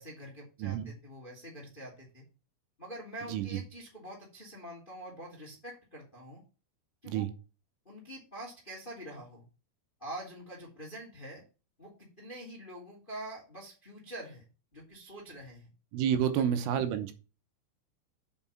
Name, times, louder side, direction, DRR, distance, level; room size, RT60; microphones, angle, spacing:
voice 1, 0.0-2.2 2.8-6.4 7.0-7.2 7.8-9.4 10.0-11.4 11.8-14.4 14.7-15.7 16.2-16.3, right 1 dB, 20° left, 1.4 m, -45 dB
voice 2, 3.3-3.6 7.0-7.3 15.9-17.1, right 9 dB, 80° right, 3.5 m, -29 dB
7.8 x 5.3 x 7.2 m
omnidirectional pair, 5.8 m